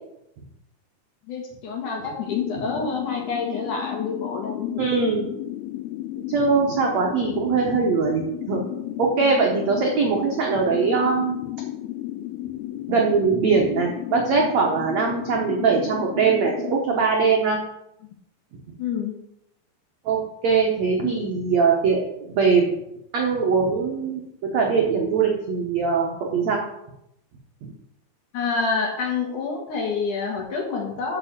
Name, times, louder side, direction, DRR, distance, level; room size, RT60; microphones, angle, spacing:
voice 1, 1.3-4.8 18.8-19.1 21.0-21.1 28.3-31.2, left 5 dB, 60° left, 0 dB, 2.4 m, -27 dB
sound 1, 2.3-16.8, left 15 dB, 85° left, 2.3 m, -33 dB
voice 2, 4.8-5.2 6.3-8.6 9.0-11.3 12.9-17.6 20.0-22.7 23.1-26.6 27.6-27.7, right 5 dB, 85° right, 0 dB, 1.5 m, -21 dB
7.5 x 6.1 x 7.4 m, 0.82 s
omnidirectional pair, 4.9 m